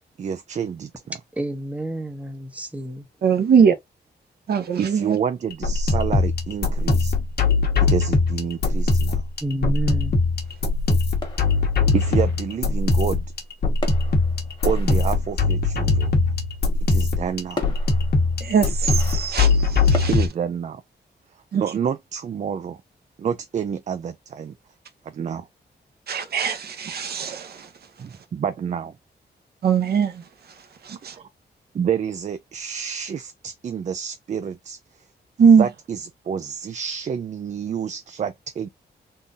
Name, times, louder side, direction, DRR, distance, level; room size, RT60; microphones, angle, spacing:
voice 1, 0.2-1.2 4.8-7.1 7.8-9.2 11.9-13.2 14.7-16.1 16.9-17.6 20.1-20.8 21.5-22.8 23.2-24.6 25.1-25.5 28.0-28.9 31.1-31.3 31.7-34.8 35.4-38.7, right 7 dB, 45° right, 0.4 m, -28 dB
voice 2, 1.3-3.0 9.4-10.2, right 1 dB, 10° right, 0.8 m, -29 dB
voice 3, 3.2-3.7 4.5-5.2 18.4-20.1 21.5-21.6 26.1-27.7 29.6-30.2 30.9-31.1 35.4-35.7, right 6 dB, 65° right, 0.7 m, -20 dB
sound 1, 5.5-20.3, left 3 dB, 65° left, 1.1 m, -21 dB
sound 2, 11.2-12.7 13.8-15.8 16.9-17.0 17.6-20.2, left 2 dB, 25° left, 1.5 m, -38 dB
3.7 x 2.4 x 2.6 m
wide cardioid pair, 140°, 17 cm